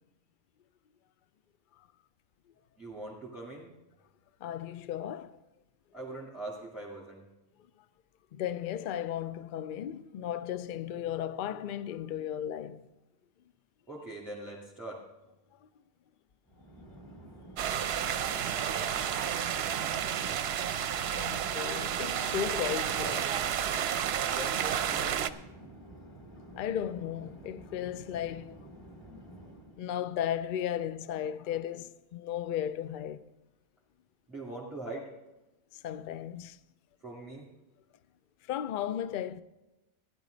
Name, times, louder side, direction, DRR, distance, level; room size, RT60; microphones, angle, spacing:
voice 1, 2.8-3.7 5.9-7.2 13.9-15.0 24.2-25.1 34.3-35.1 37.0-37.5, right 2 dB, ahead, 2.1 m, -42 dB
voice 2, 4.4-5.4 8.3-12.9 17.2-17.3 21.1-23.3 26.5-28.7 29.8-33.3 35.7-36.6 38.5-39.4, left 10 dB, 60° left, 0.6 m, -35 dB
Chatter / Fixed-wing aircraft airplane, 16.4-29.9, right 1 dB, 30° left, 2.9 m, -50 dB
sound 1, 17.6-25.3, right 9 dB, 65° right, 0.8 m, -31 dB
15.5 x 10.5 x 3.9 m
omnidirectional pair, 1.2 m